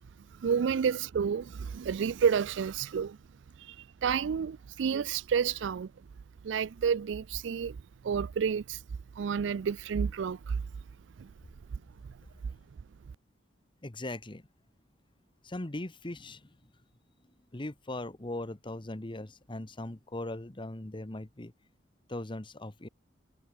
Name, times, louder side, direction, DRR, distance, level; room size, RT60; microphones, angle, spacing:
voice 1, 0.4-3.2 3.7-3.8 4.0-5.9 6.4-7.8 8.0-8.8 9.2-10.6 11.2-11.3, right 7 dB, 75° right, 0.4 m, -30 dB
voice 2, 13.8-14.4 15.4-16.6 17.5-21.5 22.1-22.9, left 1 dB, 25° left, 1.2 m, -39 dB
head